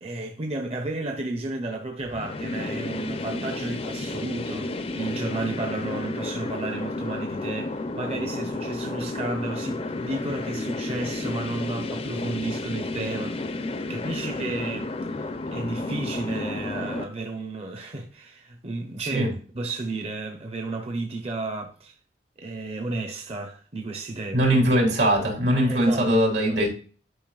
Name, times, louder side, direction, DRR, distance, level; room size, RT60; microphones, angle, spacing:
voice 1, 0.0-15.2 15.5-22.0 22.4-24.5 25.6-26.1 26.4-26.6, right 2 dB, 35° right, 0.8 m, -33 dB
sound 1, 2.1-17.0, left 2 dB, 35° left, 0.5 m, -32 dB
voice 2, 24.3-26.7, equal, 80° right, 3.4 m, -21 dB
11.0 x 5.3 x 2.4 m
head